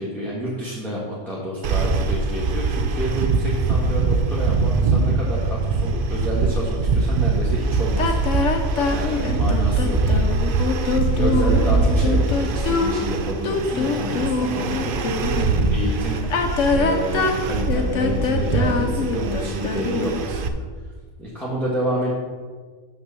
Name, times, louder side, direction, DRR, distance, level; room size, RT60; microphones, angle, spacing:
voice 1, 0.0-8.6 8.9-10.3 11.0-16.3 16.7-20.6 21.2-22.1, equal, ahead, -7 dB, 1.4 m, -29 dB
sound 1, 1.6-20.5, right 4 dB, 65° right, 0.5 m, -23 dB
sound 2, 8.0-15.5 16.2-20.2, left 4 dB, 60° left, 1.1 m, -24 dB
6.0 x 6.0 x 6.8 m, 1.5 s
omnidirectional pair, 1.5 m